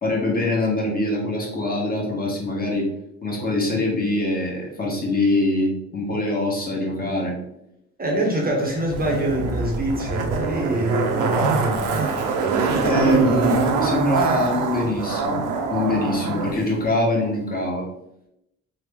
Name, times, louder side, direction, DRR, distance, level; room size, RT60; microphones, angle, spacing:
voice 1, 0.0-2.9 3.2-7.4 12.8-17.9, left 1 dB, 30° left, -2 dB, 1.0 m, -24 dB
voice 2, 8.0-12.2, right 1 dB, 30° right, 0 dB, 0.6 m, -25 dB
Zipper (clothing), 8.9-16.5 16.8-16.9, right 4 dB, 90° right, 0.6 m, -23 dB
3.0 x 2.0 x 3.3 m, 0.82 s
cardioid pair, 90°, 30 cm